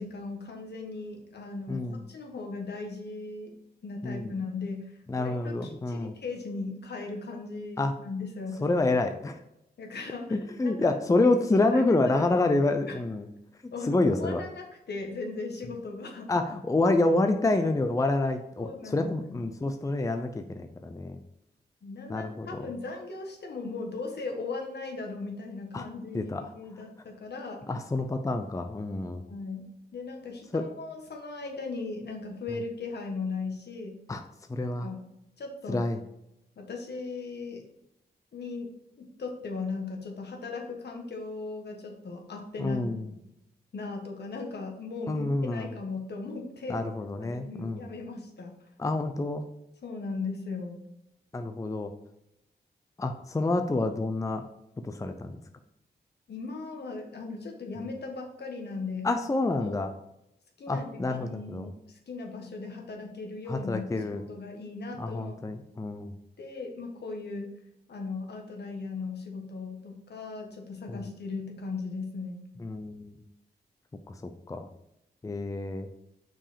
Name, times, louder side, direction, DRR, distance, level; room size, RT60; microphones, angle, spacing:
voice 1, 0.0-3.5 3.8-8.7 9.8-11.0 11.5-12.4 12.9-13.0 13.7-16.3 18.6-19.4 21.8-27.6 29.3-29.6 29.9-34.0 34.6-35.0 35.4-35.8 36.6-37.6 38.3-38.7 39.0-43.0 43.7-46.8 47.2-48.6 49.8-50.8 56.3-59.2 59.6-59.8 60.6-65.4 66.4-67.5 67.9-72.4, left 3 dB, 70° left, 2 dB, 1.5 m, -38 dB
voice 2, 1.7-2.0 4.0-4.3 5.1-6.1 7.8-7.9 8.6-9.4 10.3-13.3 13.8-14.4 16.3-21.2 22.1-22.6 25.7-25.8 26.1-26.4 27.7-29.2 30.5-30.6 34.1-34.2 34.5-34.9 35.7-36.0 42.6-43.0 45.1-45.7 46.7-47.9 48.8-49.4 51.3-51.9 53.0-54.4 54.8-55.4 57.8-57.9 59.0-59.9 60.7-61.7 63.5-64.2 65.0-66.1 70.9-71.0 72.6-73.2 74.1-74.2 74.5-74.7 75.2-75.9, left 2 dB, 20° left, 7 dB, 0.5 m, -28 dB
6.0 x 4.7 x 5.0 m, 0.83 s
wide cardioid pair, 100°, 18 cm